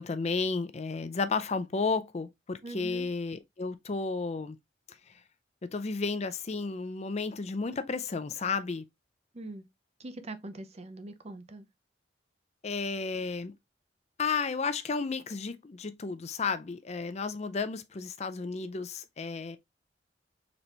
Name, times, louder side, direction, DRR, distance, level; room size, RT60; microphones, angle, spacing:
voice 1, 0.0-4.6 5.6-8.8 12.6-13.5 14.2-19.6, left 4 dB, 35° left, 0.4 m, -32 dB
voice 2, 2.6-3.1 9.3-9.6 10.0-11.6, right 2 dB, 35° right, 0.6 m, -42 dB
4.0 x 3.3 x 2.9 m
head